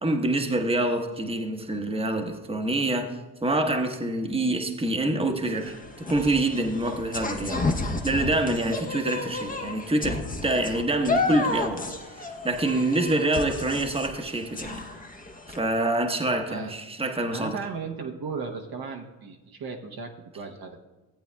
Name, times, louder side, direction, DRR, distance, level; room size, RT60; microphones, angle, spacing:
voice 1, 0.0-3.2 3.4-7.7 8.0-11.8 12.1-14.8 15.5-17.6, right 2 dB, 10° right, 3 dB, 1.1 m, -26 dB
sound 1, 5.4-15.6, left 3 dB, 15° left, 1.0 m, -32 dB
voice 2, 17.2-20.8, right 5 dB, 45° right, 2 dB, 1.0 m, -36 dB
15.0 x 8.2 x 2.3 m, 1.2 s
hypercardioid pair, 55°, 49 cm